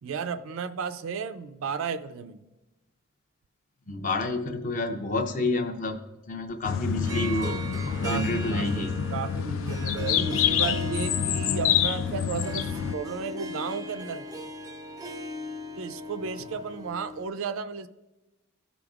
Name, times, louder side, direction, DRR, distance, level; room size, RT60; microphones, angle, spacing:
voice 1, 0.0-2.4 8.0-14.3 15.8-17.9, right 5 dB, 70° right, 11 dB, 0.4 m, -34 dB
voice 2, 3.9-6.0 6.3-8.9, left 2 dB, 40° left, 5 dB, 0.6 m, -29 dB
sound 1, 6.6-13.0, left 9 dB, 70° left, 0.3 m, -27 dB
Harp, 6.9-17.3, left 1 dB, 15° right, 0.5 m, -38 dB
14.5 x 5.1 x 2.4 m, 1.0 s
head